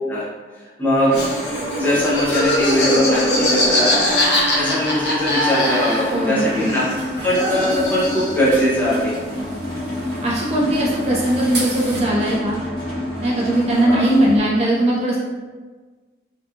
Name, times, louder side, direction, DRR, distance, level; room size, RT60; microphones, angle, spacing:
voice 1, 0.8-1.2 1.7-4.0 4.6-6.8 7.2-9.2 13.9-14.1, equal, 10° left, -8 dB, 0.6 m, -20 dB
sound 1, 0.9-14.4, left 1 dB, 60° left, 1.2 m, -28 dB
Laughter, 1.1-6.3 6.5-8.5, left 1 dB, 75° left, 0.6 m, -22 dB
sound 2, 1.4-12.0, right 2 dB, 70° right, 0.7 m, -37 dB
voice 2, 6.1-6.7 10.2-12.6 13.2-15.2, right 1 dB, 35° right, -4 dB, 0.3 m, -19 dB
2.8 x 2.3 x 2.3 m, 1.4 s
head